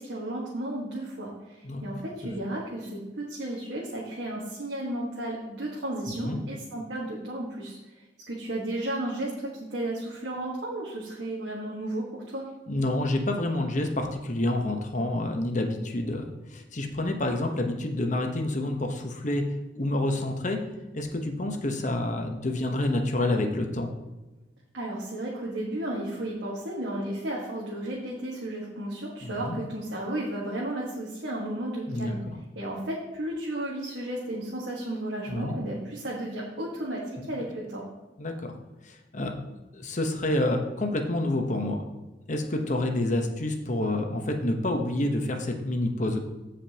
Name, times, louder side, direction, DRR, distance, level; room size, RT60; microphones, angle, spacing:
voice 1, 0.0-12.4 24.7-32.2 32.5-37.0 37.3-37.8, right 1 dB, 85° right, -4 dB, 1.7 m, -33 dB
voice 2, 12.7-19.4 19.7-20.6 20.9-23.9 29.2-29.6 31.9-32.4 35.3-35.6 38.2-38.5 38.8-39.3 39.7-41.8 42.3-46.2, left 1 dB, 45° left, 4 dB, 1.1 m, -28 dB
15.5 x 5.2 x 2.9 m, 1.1 s
head